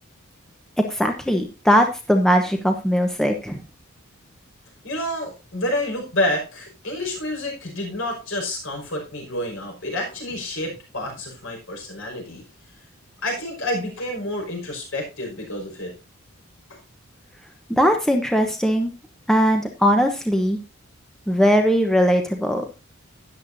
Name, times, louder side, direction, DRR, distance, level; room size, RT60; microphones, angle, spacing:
voice 1, 0.9-3.6 17.7-18.9 19.3-20.6 21.3-22.6, equal, ahead, 3 dB, 0.9 m, -19 dB
voice 2, 4.8-12.4 13.2-15.9 16.7-16.8, left 1 dB, 60° left, 1 dB, 5.5 m, -29 dB
13.0 x 10.5 x 2.7 m, 0.29 s
head